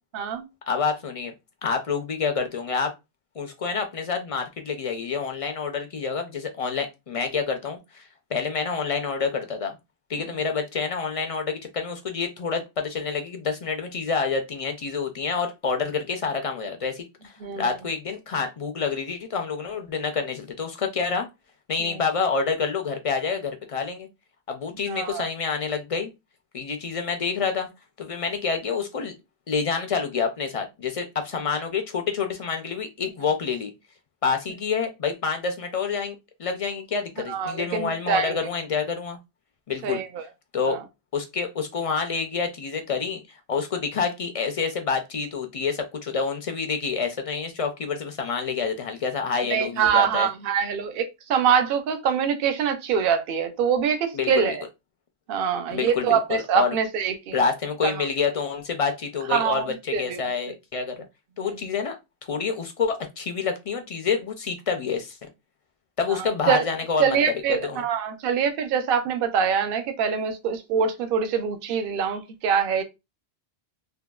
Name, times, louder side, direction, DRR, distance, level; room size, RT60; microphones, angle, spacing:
voice 1, 0.1-0.5 10.2-10.4 17.4-17.7 21.8-21.9 24.9-25.3 37.3-38.4 39.8-40.2 40.7-40.8 49.5-54.6 55.3-57.4 57.8-57.9 59.3-60.2 61.4-61.6 66.1-66.7 67.0-72.8, right 7 dB, 65° right, 0.7 m, -24 dB
voice 2, 0.7-1.3 1.6-2.9 3.4-9.8 10.1-21.3 21.7-24.1 24.5-26.1 26.5-27.7 28.0-29.1 29.5-33.7 34.2-39.2 39.7-40.0 40.5-40.8 41.1-43.2 43.5-50.3 54.1-54.5 55.7-56.7 57.3-61.0 61.4-62.0 62.3-65.2 66.0-67.2 67.6-67.8, left 5 dB, 60° left, 0.3 m, -28 dB
3.6 x 2.2 x 2.2 m
omnidirectional pair, 1.1 m